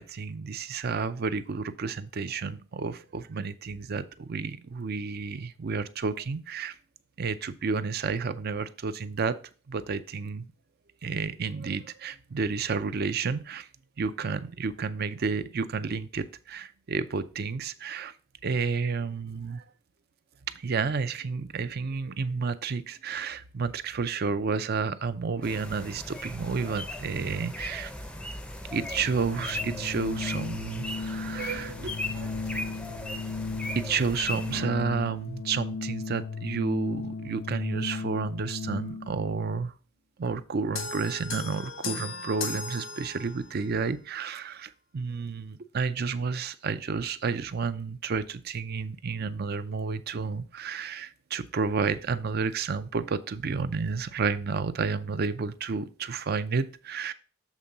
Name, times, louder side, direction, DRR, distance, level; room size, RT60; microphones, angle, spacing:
voice 1, 0.0-6.8 7.2-9.4 9.7-10.5 11.0-13.7 14.0-18.1 18.4-19.6 20.5-27.9 28.7-32.8 33.8-39.7 40.2-57.1, right 5 dB, 50° right, 13 dB, 0.5 m, -31 dB
sound 1, 25.4-34.6, left 1 dB, 5° left, 0.5 m, -38 dB
Organ, 28.9-39.2, left 4 dB, 65° left, 0.4 m, -36 dB
sound 2, 40.7-43.6, left 4 dB, 85° left, 1.1 m, -37 dB
7.3 x 3.7 x 5.3 m, 0.36 s
head